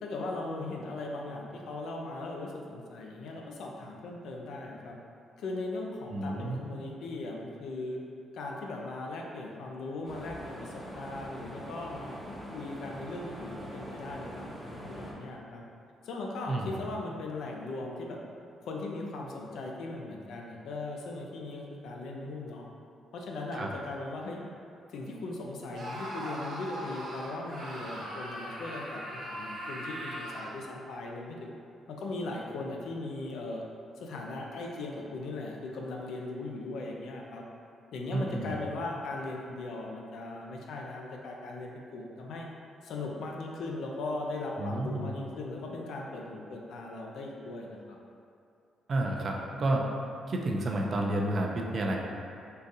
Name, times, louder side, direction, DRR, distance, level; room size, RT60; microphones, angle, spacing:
voice 1, 0.0-5.0 5.4-8.0 8.3-15.6 16.0-18.2 18.6-22.6 23.1-24.4 24.9-31.5 31.9-33.6 34.0-37.4 37.9-42.5 42.8-48.0, left 2 dB, 75° left, 0 dB, 0.4 m, -38 dB
voice 2, 6.1-6.6 16.5-16.7 23.5-23.7 38.1-38.6 44.6-45.1 48.9-49.8 50.3-52.0, right 1 dB, 50° right, 0 dB, 0.4 m, -30 dB
sound 1, 10.0-15.1, equal, 20° left, 0.6 m, -43 dB
Screaming, 25.7-30.6, equal, 75° right, 1.1 m, -39 dB
3.7 x 2.5 x 2.7 m, 2.5 s
cardioid pair, 90°, 0 cm